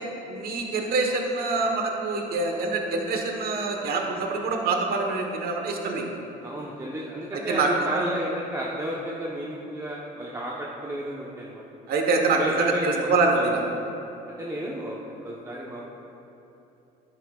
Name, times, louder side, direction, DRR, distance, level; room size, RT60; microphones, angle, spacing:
voice 1, 0.3-6.0 7.5-8.0 11.9-13.6, right 3 dB, 65° right, 2 dB, 1.3 m, -25 dB
voice 2, 6.4-11.6 12.3-13.1 13.3-13.5 14.3-15.9, right 1 dB, 20° right, -4 dB, 1.1 m, -32 dB
13.0 x 10.0 x 2.5 m, 3.0 s
cardioid pair, 110°, 17 cm